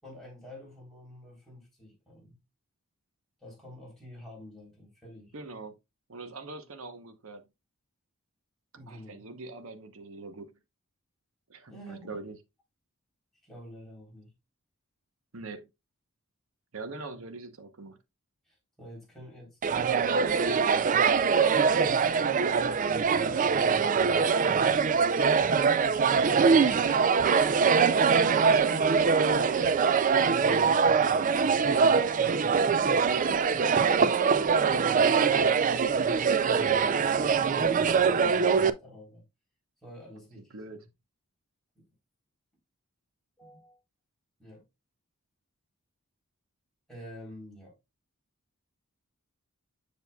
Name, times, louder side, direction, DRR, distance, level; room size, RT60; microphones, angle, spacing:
voice 1, 0.0-2.4 3.4-5.3 8.8-9.3 11.7-12.1 13.4-14.3 18.5-22.2 23.2-24.0 25.7-27.2 30.1-31.9 34.4-39.2 39.8-40.9 41.8-41.9 43.4-43.8 44.4-44.6 46.9-47.8, equal, ahead, 3.5 m, -49 dB
voice 2, 5.3-5.7 6.1-7.5 8.9-10.5 11.5-12.4 15.3-15.7 16.7-18.0 27.9-30.0 40.4-40.9, right 3 dB, 70° right, 0.9 m, -42 dB
sound 1, 19.6-38.7, right 5 dB, 35° right, 0.3 m, -23 dB
7.1 x 6.4 x 2.3 m
head